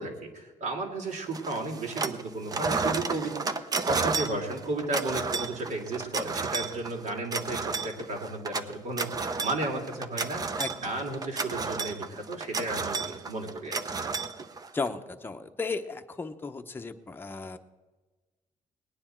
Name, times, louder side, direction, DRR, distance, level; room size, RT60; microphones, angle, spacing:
voice 1, 0.0-10.4 10.8-13.8, right 2 dB, 65° right, 1 dB, 3.0 m, -34 dB
sound 1, 1.3-2.2 2.5-14.9, right 4 dB, 30° right, 0.7 m, -32 dB
voice 2, 10.6-10.9 14.7-17.6, left 4 dB, 15° left, 5 dB, 0.8 m, -35 dB
19.5 x 9.7 x 4.5 m, 1.2 s
cardioid pair, 130°, 13 cm